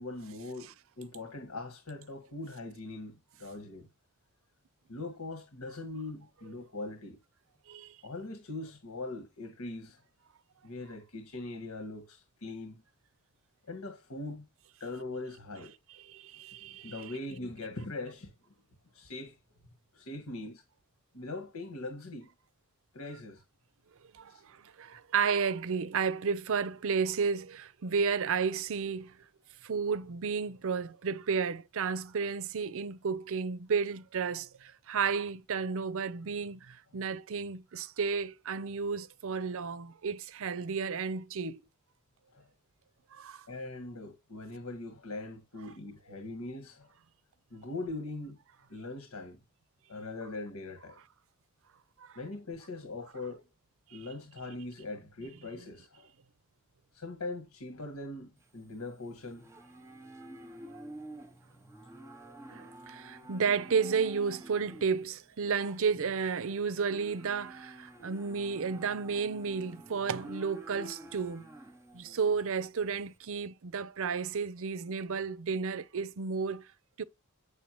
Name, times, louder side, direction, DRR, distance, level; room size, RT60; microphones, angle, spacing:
voice 1, 0.0-3.9 4.9-7.2 8.0-10.0 10.6-12.8 13.7-14.5 14.8-15.8 16.7-18.3 18.9-19.4 19.9-20.6 21.1-22.3 22.9-23.4 24.3-24.4 42.3-42.4 43.5-46.9 47.5-48.4 48.7-49.4 49.9-51.0 52.2-53.4 53.9-56.1 56.9-59.4, left 2 dB, 80° left, 1.8 m, -41 dB
voice 2, 16.0-17.1 24.1-29.2 29.6-41.6 43.1-43.5 52.0-52.2 53.9-54.1 62.5-71.5 71.9-76.7 77.0-77.1, right 5 dB, 65° right, 0.6 m, -32 dB
Livestock farm animals working animals, 58.4-73.1, right 1 dB, 15° right, 0.9 m, -50 dB
8.4 x 6.7 x 3.0 m
head